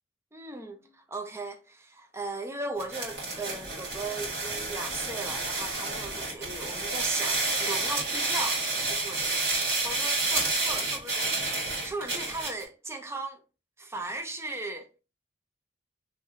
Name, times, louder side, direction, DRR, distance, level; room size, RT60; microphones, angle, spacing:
voice 1, 0.3-9.5 9.8-11.3 11.8-13.4 13.8-14.9, right 2 dB, 15° right, 0.5 m, -37 dB
sound 1, 2.8-12.6, right 3 dB, 60° right, 1.8 m, -30 dB
3.8 x 3.0 x 2.6 m
head